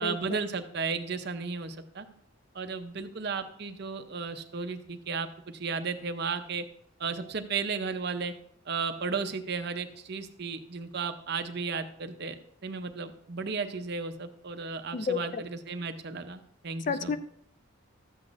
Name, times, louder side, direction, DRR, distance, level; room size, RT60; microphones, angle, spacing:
voice 1, 0.0-2.1 2.5-6.6 7.0-8.3 8.7-12.3 12.6-17.2, right 5 dB, 50° right, 8 dB, 0.6 m, -34 dB
voice 2, 14.9-15.4 16.9-17.2, left 5 dB, 35° left, 12 dB, 0.3 m, -30 dB
12.5 x 7.9 x 2.5 m, 0.69 s
head